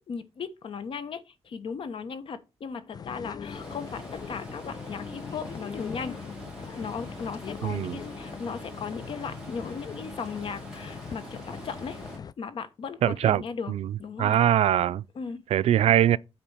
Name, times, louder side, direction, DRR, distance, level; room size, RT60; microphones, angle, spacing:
voice 1, 0.1-6.2 6.8-12.0 12.4-13.7 14.0-14.4 15.1-15.4, left 5 dB, 55° left, 1.1 m, -37 dB
sound 1, 2.9-12.3, left 7 dB, 40° left, 0.4 m, -41 dB
Stream, 3.4-12.2, right 2 dB, 5° right, 3.2 m, -45 dB
voice 2, 7.6-8.0 13.0-13.4 13.7-13.9 14.2-15.0 15.5-16.2, right 11 dB, 80° right, 0.4 m, -22 dB
8.8 x 4.4 x 6.3 m
wide cardioid pair, 150°, 10 cm